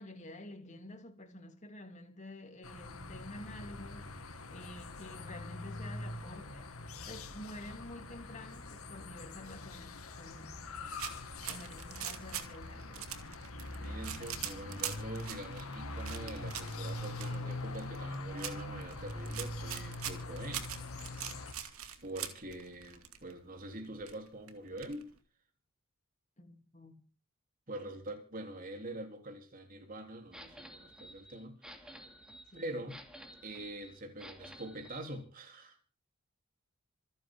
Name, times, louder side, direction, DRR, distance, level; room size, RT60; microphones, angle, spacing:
voice 1, 0.0-4.1 4.5-6.7 7.0-10.6 11.4-13.1 26.4-27.1 32.5-32.7, left 1 dB, 35° left, 3.2 m, -49 dB
sound 1, 2.6-21.5, left 2 dB, 85° left, 2.3 m, -43 dB
sound 2, 10.9-23.3 23.6-23.7 23.8-25.2, right 9 dB, 80° right, 2.4 m, -43 dB
voice 2, 13.8-20.9 22.0-25.1 27.7-32.1 32.5-33.0 33.4-35.8, right 1 dB, 40° right, 3.7 m, -45 dB
sound 3, 30.3-35.1, equal, 5° right, 2.7 m, -52 dB
27.0 x 9.5 x 3.9 m
head